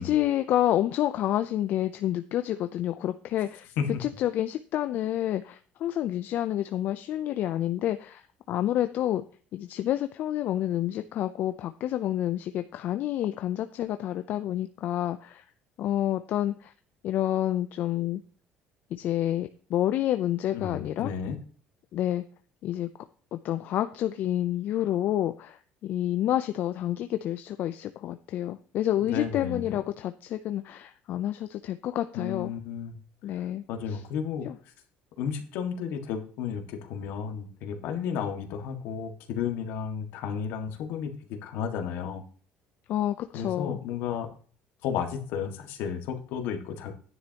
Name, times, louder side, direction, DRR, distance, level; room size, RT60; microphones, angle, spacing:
voice 1, 0.0-3.7 4.0-8.2 8.5-9.2 9.5-15.4 15.8-16.7 17.0-18.2 18.9-21.1 21.9-22.2 22.6-22.9 23.3-32.5 33.2-34.0 34.5-34.6 42.9-43.7, left 12 dB, 60° left, 9 dB, 0.5 m, -29 dB
voice 2, 20.5-21.4 29.0-29.8 32.1-33.0 33.4-34.5 35.2-42.3 43.3-44.3 44.8-46.9, left 7 dB, 80° left, 5 dB, 1.8 m, -33 dB
11.5 x 9.8 x 2.9 m, 0.42 s
cardioid pair, 110°, 4 cm